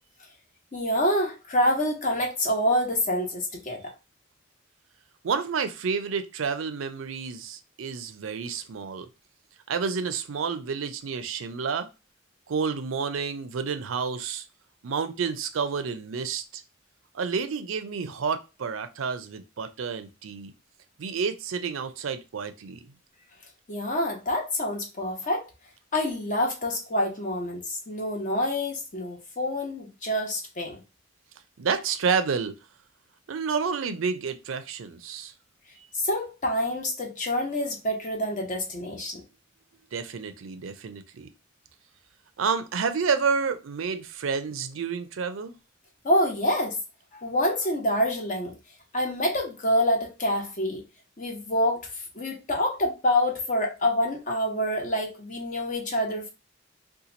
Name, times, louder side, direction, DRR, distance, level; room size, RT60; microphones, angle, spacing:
voice 1, 0.7-3.9 23.7-25.5 25.9-30.8 35.9-39.2 46.0-46.8 47.1-48.5 48.9-50.8 51.2-56.3, left 1 dB, 40° left, 1.0 m, -27 dB
voice 2, 5.2-9.1 9.7-11.9 12.5-14.4 14.8-16.6 17.1-20.5 21.0-22.8 31.6-32.5 33.3-35.3 35.8-35.9 39.9-41.3 42.4-45.5, right 5 dB, 90° right, 0.5 m, -29 dB
2.9 x 2.3 x 3.8 m
head